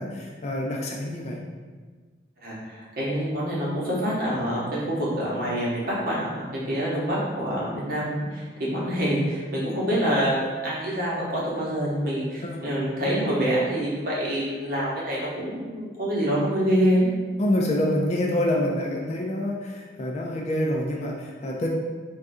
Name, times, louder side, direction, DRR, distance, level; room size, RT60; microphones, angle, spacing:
voice 1, 0.0-1.4 12.4-12.5 17.4-21.7, left 1 dB, 35° left, -1 dB, 0.3 m, -26 dB
voice 2, 2.4-17.1, equal, 50° right, -6 dB, 0.9 m, -26 dB
3.6 x 2.3 x 2.6 m, 1.4 s
head